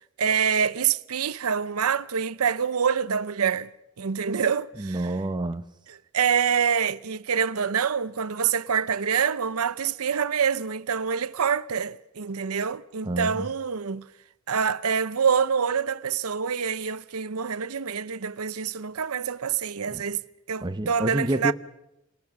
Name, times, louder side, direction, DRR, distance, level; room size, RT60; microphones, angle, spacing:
voice 1, 0.2-3.7 4.0-5.0 6.1-14.0 14.5-20.2 20.5-21.5, right 7 dB, 85° right, 0.7 m, -26 dB
voice 2, 4.8-5.7 13.0-13.5 19.9-20.0 20.6-21.5, right 1 dB, 20° right, 0.8 m, -28 dB
28.5 x 19.5 x 6.1 m
head